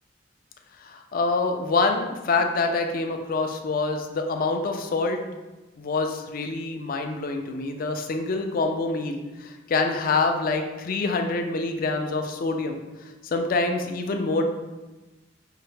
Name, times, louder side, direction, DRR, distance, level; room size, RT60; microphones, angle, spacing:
voice 1, 0.8-5.2 5.8-12.8 13.2-14.4, left 3 dB, 50° left, 5 dB, 0.4 m, -26 dB
5.5 x 2.0 x 3.2 m, 1.1 s
head